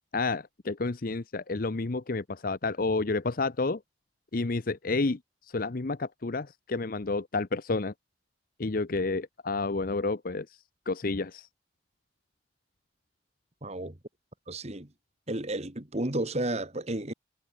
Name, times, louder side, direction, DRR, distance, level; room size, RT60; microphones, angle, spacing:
voice 1, 0.1-3.8 4.3-7.9 8.6-11.5, left 3 dB, 50° left, 0.8 m, -30 dB
voice 2, 13.6-14.0 14.5-14.9 15.3-17.1, right 1 dB, 35° right, 2.3 m, -32 dB
head